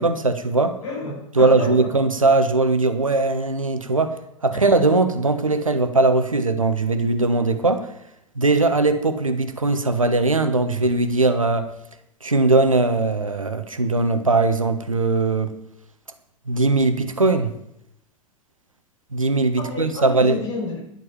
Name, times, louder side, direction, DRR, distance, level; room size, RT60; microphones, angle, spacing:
voice 1, 0.0-0.8 1.3-7.9 8.3-11.7 12.2-15.5 16.5-17.5 19.1-20.4, right 3 dB, 85° right, 9 dB, 1.2 m, -20 dB
voice 2, 0.8-1.9 4.5-4.6 19.6-20.8, left 3 dB, 65° left, -1 dB, 5.6 m, -30 dB
11.0 x 7.7 x 7.1 m, 0.78 s
figure-of-eight pair, 90°, 17 cm